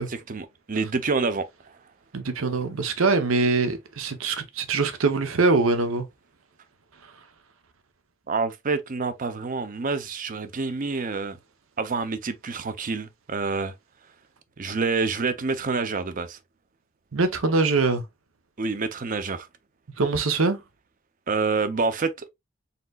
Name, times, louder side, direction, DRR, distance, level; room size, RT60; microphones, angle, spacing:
voice 1, 0.1-1.5 8.3-11.4 11.8-13.7 14.6-16.4 18.6-19.5 21.3-22.3, right 4 dB, 40° right, 0.6 m, -27 dB
voice 2, 2.1-6.1 17.1-18.0 20.0-20.6, right 3 dB, 85° right, 0.8 m, -23 dB
4.2 x 3.9 x 2.3 m
head